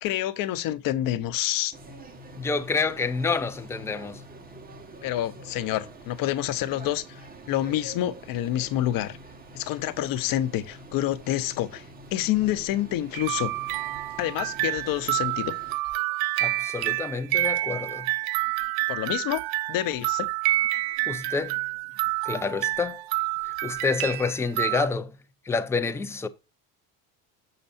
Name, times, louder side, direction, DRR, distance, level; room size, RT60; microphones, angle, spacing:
voice 1, 0.0-1.7 5.0-7.2 7.5-9.2 9.5-11.8 12.1-13.5 14.2-15.5 18.9-19.4 19.7-20.3, left 13 dB, 60° left, 0.8 m, -27 dB
sound 1, 1.7-15.8, right 1 dB, 20° right, 1.4 m, -46 dB
voice 2, 2.4-4.2 16.4-18.0 21.1-21.6 22.3-23.0 23.6-25.1 25.5-26.3, left 4 dB, 5° left, 0.4 m, -28 dB
sound 2, 13.1-24.9, right 18 dB, 70° right, 0.6 m, -28 dB
6.7 x 6.7 x 2.6 m
cardioid pair, 130°, 39 cm